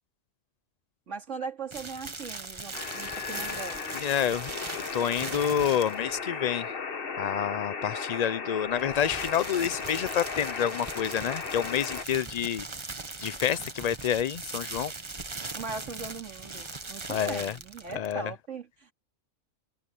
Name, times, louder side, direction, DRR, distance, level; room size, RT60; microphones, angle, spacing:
voice 1, 1.1-4.0 15.5-18.9, right 4 dB, 65° right, 2.7 m, -39 dB
sound 1, 1.7-6.2 8.7-18.2, right 3 dB, 25° right, 1.1 m, -40 dB
sound 2, 2.7-12.0, left 5 dB, 45° left, 1.4 m, -36 dB
voice 2, 3.9-6.7 7.2-12.7 13.2-14.9 17.1-17.5 17.9-18.3, left 9 dB, 85° left, 0.3 m, -28 dB
omnidirectional pair, 1.4 m